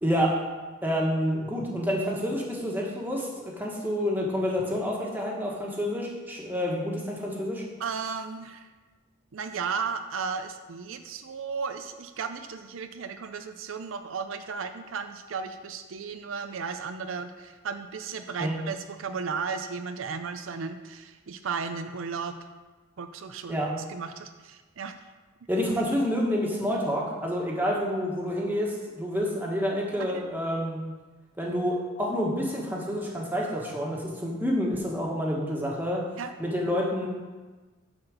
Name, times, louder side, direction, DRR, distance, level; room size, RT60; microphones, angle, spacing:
voice 1, 0.0-0.4 0.8-7.6 18.4-18.5 23.5-23.7 25.5-30.8 31.4-36.0 36.4-37.1, equal, 10° right, -3 dB, 1.5 m, -28 dB
voice 2, 7.8-8.7 9.3-22.3 23.0-23.6 23.9-24.9 30.0-30.2 36.2-36.3, right 5 dB, 75° right, 8 dB, 0.5 m, -35 dB
9.7 x 4.3 x 6.6 m, 1.3 s
head